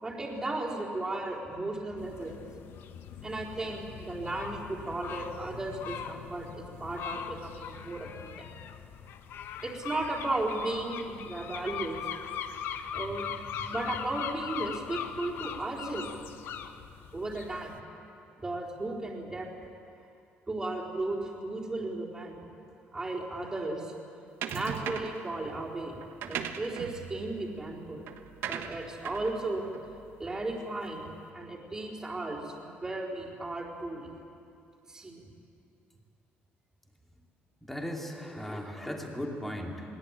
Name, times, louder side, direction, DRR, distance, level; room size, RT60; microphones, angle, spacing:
voice 1, 0.0-2.4 3.2-8.5 9.6-12.0 12.9-13.3 13.7-16.1 17.1-17.8 18.4-19.5 20.5-22.4 22.9-23.9 24.5-28.1 28.5-29.7 30.2-31.1 31.3-34.1 34.9-35.3, right 2 dB, 15° right, -5 dB, 4.2 m, -35 dB
sound 1, 2.0-17.8, left 8 dB, 65° left, 1.1 m, -40 dB
sound 2, 24.4-25.3 26.0-30.7, right 8 dB, 70° right, 1.4 m, -39 dB
voice 2, 37.6-40.0, equal, 5° left, 0 dB, 2.8 m, -37 dB
21.5 x 20.0 x 9.0 m, 2.5 s
cardioid pair, 150°, 4 cm